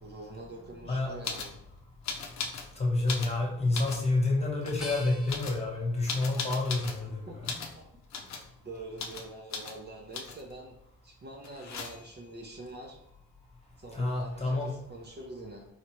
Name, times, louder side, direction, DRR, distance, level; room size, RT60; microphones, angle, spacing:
voice 1, 0.0-1.6 7.0-7.4 7.7-7.9 8.2-8.3 8.6-10.8 11.0-13.0 13.8-15.7, right 2 dB, 35° right, 0 dB, 0.6 m, -45 dB
sound 1, 1.2-1.5 2.0-2.7 3.0-4.1 4.6-4.9 5.3-7.0 7.4-7.8 8.1-8.5 9.0-9.3 9.5-9.8 10.1-10.5 11.4-12.2 14.0-14.1 14.3-14.9, left 5 dB, 60° left, 0.7 m, -38 dB
voice 2, 2.7-7.2 13.9-14.7, left 2 dB, 20° left, -2 dB, 1.2 m, -28 dB
sound 2, 4.8-7.7 8.3-9.1, left 2 dB, ahead, 0.9 m, -48 dB
4.3 x 2.4 x 3.0 m, 0.80 s
cardioid pair, 90°, 30 cm